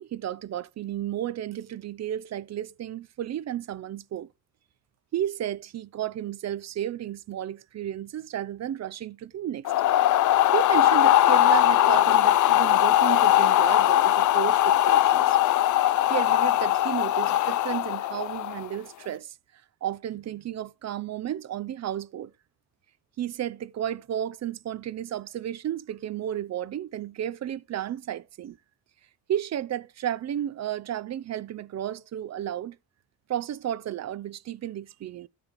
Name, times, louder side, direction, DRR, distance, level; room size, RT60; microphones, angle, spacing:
voice 1, 0.0-4.3 5.1-9.7 10.2-15.4 16.1-19.3 19.8-22.3 23.2-28.6 29.3-32.8 33.3-35.3, right 11 dB, 45° right, 0.5 m, -33 dB
sound 1, 9.6-18.7, left 13 dB, 50° left, 0.4 m, -20 dB
12.5 x 5.0 x 3.3 m
cardioid pair, 75°, 39 cm